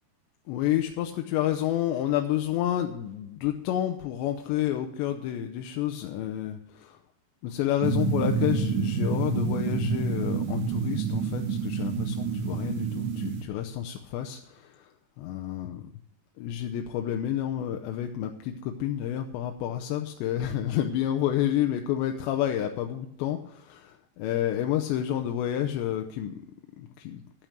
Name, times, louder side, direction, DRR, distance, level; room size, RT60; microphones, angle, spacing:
voice 1, 0.5-7.0 7.4-14.9 15.2-15.9 16.4-26.3 26.8-27.2, left 11 dB, 80° left, 5 dB, 3.0 m, -29 dB
sound 1, 7.8-13.4, right 6 dB, 60° right, 2.4 m, -28 dB
12.0 x 9.1 x 6.6 m, 0.77 s
omnidirectional pair, 5.2 m